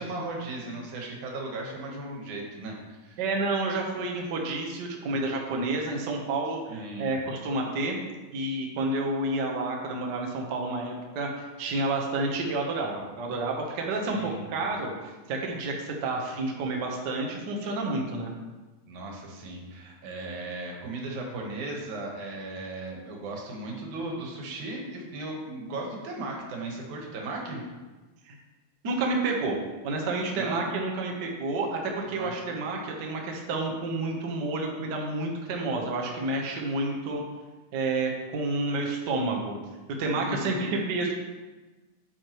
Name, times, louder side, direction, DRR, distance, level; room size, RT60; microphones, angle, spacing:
voice 1, 0.0-3.2 6.7-7.1 14.1-14.5 18.9-27.6 30.3-30.7 32.1-32.3 40.1-40.7, right 2 dB, 80° right, 0 dB, 2.7 m, -36 dB
voice 2, 3.2-8.0 8.3-18.3 28.2-28.3 28.8-29.6 29.8-37.2 37.7-39.6 40.0-41.1, right 2 dB, 65° right, 0 dB, 1.1 m, -30 dB
9.2 x 6.5 x 3.0 m, 1.2 s
omnidirectional pair, 3.4 m